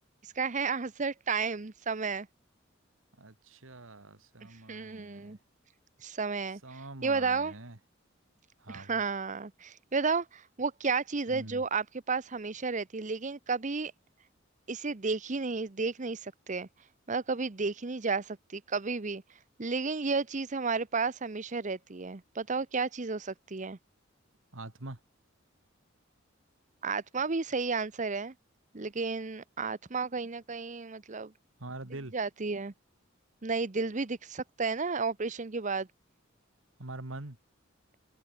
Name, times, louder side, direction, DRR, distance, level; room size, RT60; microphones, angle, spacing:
voice 1, 0.2-2.3 4.7-5.4 6.0-6.6 7.0-7.5 8.7-13.9 14.7-16.7 17.1-19.2 19.6-23.8 26.8-28.3 28.7-31.3 32.1-32.7 33.4-35.9, right 4 dB, 40° right, 0.9 m, -32 dB
voice 2, 3.2-5.4 6.6-7.8 8.6-9.0 11.3-11.6 24.5-25.0 31.6-32.1 36.8-37.4, right 2 dB, 85° right, 2.4 m, -44 dB
head